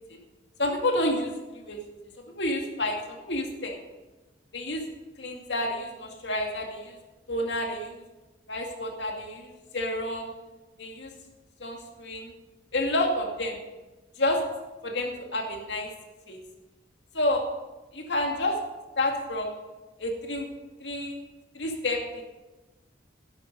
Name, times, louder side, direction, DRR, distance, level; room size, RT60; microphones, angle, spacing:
voice 1, 0.6-1.8 2.3-3.0 3.3-3.8 4.5-4.8 5.2-7.0 7.3-8.0 8.5-10.3 10.8-11.1 11.6-12.3 12.7-13.6 14.2-14.4 14.8-15.9 16.3-16.4 17.1-17.5 17.9-18.5 19.0-19.5 20.0-20.5 20.8-21.2 21.5-22.2, left 1 dB, 80° left, 2 dB, 2.2 m, -29 dB
11.5 x 11.0 x 5.3 m, 1.1 s
head